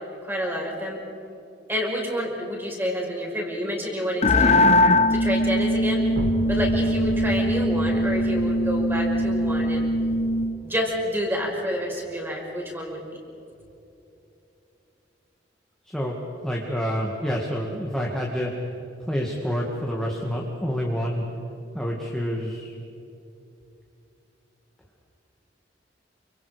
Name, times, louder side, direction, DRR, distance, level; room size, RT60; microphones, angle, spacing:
voice 1, 0.2-1.0 1.7-4.7 5.1-6.1 6.5-9.9 10.6-13.0, equal, 10° right, -1 dB, 5.9 m, -28 dB
sound 1, 4.2-10.6, left 1 dB, 35° left, 1.0 m, -21 dB
sound 2, 6.1-11.6, equal, 75° right, 1.7 m, -35 dB
voice 2, 15.8-18.5 19.0-21.2 21.7-22.8, equal, 5° left, -2 dB, 2.2 m, -28 dB
29.0 x 26.0 x 5.2 m, 2.8 s
head